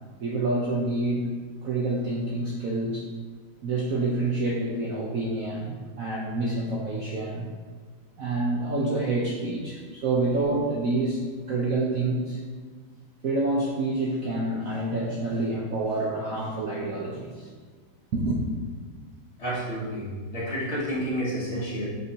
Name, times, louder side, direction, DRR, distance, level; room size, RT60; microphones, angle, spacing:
voice 1, 0.2-1.3 1.6-3.0 3.6-7.5 8.2-11.2 11.5-12.4 13.2-17.5 18.1-18.4, right 2 dB, 60° right, -3 dB, 0.9 m, -27 dB
voice 2, 19.4-21.9, equal, 35° left, -9 dB, 1.9 m, -30 dB
8.0 x 4.4 x 2.8 m, 1.5 s
omnidirectional pair, 2.1 m